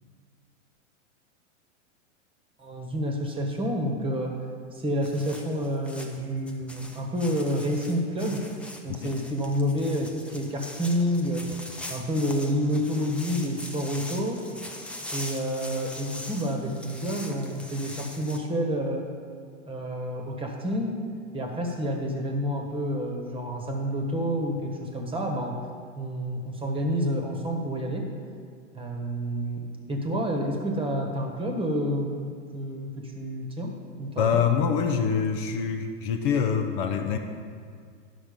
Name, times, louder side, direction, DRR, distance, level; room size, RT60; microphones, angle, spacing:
voice 1, 2.6-4.3 4.7-8.4 8.8-11.4 11.9-14.4 15.1-19.0 19.6-20.9 21.3-25.5 26.0-28.0 28.7-33.7 34.0-34.4, equal, 15° right, 2 dB, 1.3 m, -29 dB
sound 1, 5.0-18.4, left 1 dB, 5° left, 0.6 m, -42 dB
voice 2, 34.2-37.2, left 7 dB, 45° left, 5 dB, 0.7 m, -25 dB
11.5 x 6.0 x 5.2 m, 2.1 s
hypercardioid pair, 120°, 37 cm